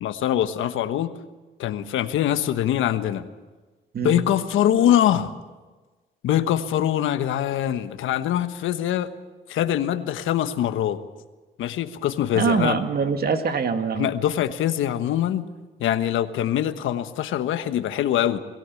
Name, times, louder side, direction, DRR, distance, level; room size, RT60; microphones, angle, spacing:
voice 1, 0.0-1.1 1.6-3.3 4.0-5.3 6.2-9.1 9.5-11.0 11.6-12.8 14.0-15.4 15.8-18.4, left 11 dB, 80° left, 10 dB, 1.3 m, -23 dB
voice 2, 12.3-14.1, right 5 dB, 50° right, 7 dB, 2.1 m, -23 dB
21.5 x 16.5 x 8.4 m, 1.3 s
cardioid pair, 90°, 20 cm